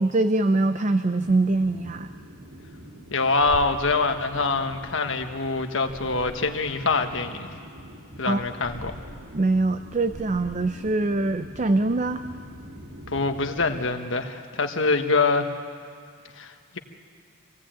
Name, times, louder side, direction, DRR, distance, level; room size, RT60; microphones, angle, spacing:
voice 1, 0.0-2.1 8.3-8.4 9.3-12.2, right 2 dB, 35° right, 10 dB, 0.5 m, -23 dB
sound 1, 1.2-13.9, equal, 85° right, 3.1 m, -43 dB
voice 2, 3.1-7.5 8.2-9.0 13.1-15.5 16.4-16.8, left 3 dB, 65° left, 6 dB, 1.4 m, -25 dB
25.5 x 17.5 x 9.0 m, 2.3 s
head